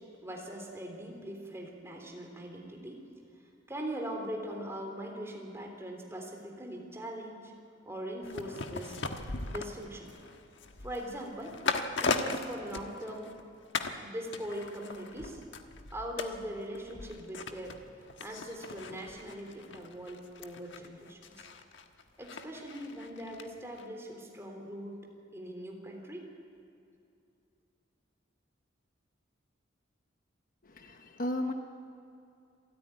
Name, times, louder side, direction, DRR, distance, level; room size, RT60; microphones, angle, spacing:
voice 1, 0.0-3.0 3.7-7.5 7.8-9.0 9.5-10.1 10.8-11.6 12.0-13.3 14.0-15.4 15.9-17.8 18.2-21.5 22.2-25.1 25.3-26.3, equal, 15° right, 1 dB, 3.5 m, -41 dB
sound 1, 8.2-13.4 13.7-14.0 14.3-23.5 23.8-23.9, left 4 dB, 65° left, 1.4 m, -38 dB
voice 2, 30.6-31.5, left 1 dB, 45° left, 5 dB, 1.3 m, -34 dB
26.5 x 14.0 x 10.0 m, 2.6 s
head